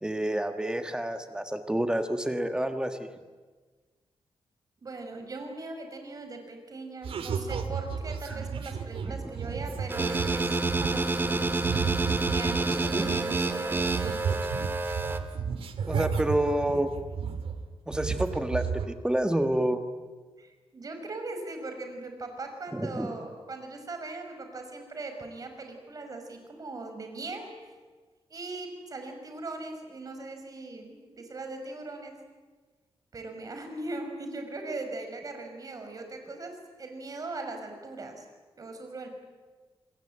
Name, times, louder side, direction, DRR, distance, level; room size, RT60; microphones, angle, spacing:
voice 1, 0.0-3.1 8.3-8.4 9.0-9.3 12.6-13.1 15.9-16.9 17.9-19.8 22.7-23.1, right 1 dB, 10° right, 7 dB, 1.6 m, -29 dB
voice 2, 4.8-11.6 12.3-14.2 20.4-27.7 28.3-32.1 33.1-38.2 38.6-39.1, right 2 dB, 40° right, 5 dB, 5.5 m, -40 dB
sound 1, 7.0-13.5 13.7-17.6 17.9-18.9, right 6 dB, 90° right, 2.3 m, -33 dB
sound 2, 9.9-15.2, right 2 dB, 25° right, 1.9 m, -28 dB
27.5 x 21.0 x 8.9 m, 1.4 s
wide cardioid pair, 145°, 9 cm